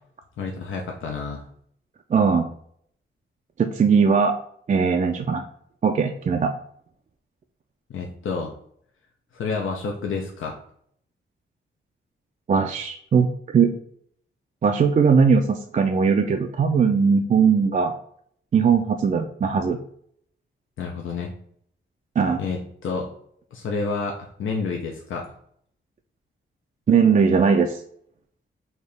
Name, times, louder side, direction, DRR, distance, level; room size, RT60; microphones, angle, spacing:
voice 1, 0.4-1.5 7.9-8.5 9.3-10.6 20.8-21.3 22.4-23.1 23.5-25.3, left 4 dB, 70° left, 1 dB, 0.6 m, -29 dB
voice 2, 2.1-2.5 3.6-4.3 4.7-5.4 5.8-6.5 12.5-13.7 14.6-17.9 18.5-19.8 22.2-22.4 26.9-27.8, right 6 dB, 40° right, 4 dB, 0.4 m, -19 dB
4.4 x 2.8 x 3.3 m, 0.65 s
cardioid pair, 75°, 21 cm